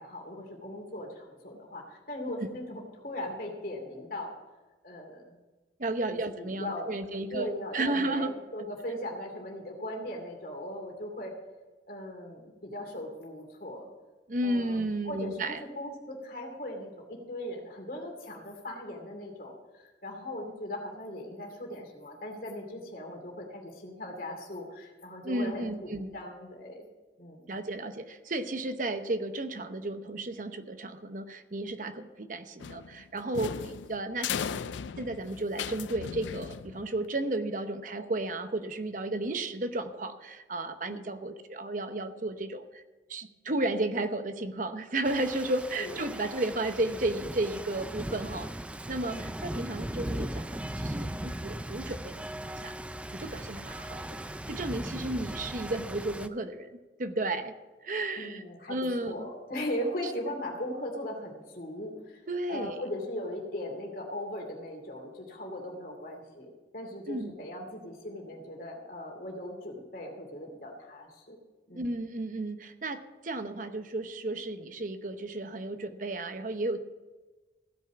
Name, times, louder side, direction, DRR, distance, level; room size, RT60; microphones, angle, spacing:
voice 1, 0.0-4.3 4.8-5.4 6.1-11.3 11.9-13.9 14.4-26.9 27.2-27.5 40.9-41.1 45.8-46.0 49.1-49.3 58.2-62.2 62.5-71.4 71.7-71.9, left 1 dB, 50° left, 1 dB, 2.6 m, -39 dB
voice 2, 5.8-8.3 14.3-15.6 25.2-26.1 27.5-34.3 35.0-42.8 43.1-48.5 48.9-52.1 52.4-52.7 53.1-54.2 54.5-56.7 57.0-57.5 57.8-58.4 58.7-59.3 60.0-60.1 62.3-62.8 67.1-67.3 71.7-76.8, right 2 dB, 45° right, 8 dB, 0.8 m, -33 dB
sound 1, 32.6-37.1, left 7 dB, 90° left, 0.4 m, -37 dB
Rain, 45.0-56.3, right 1 dB, 5° right, 0.3 m, -38 dB
16.0 x 5.4 x 8.2 m, 1.2 s
head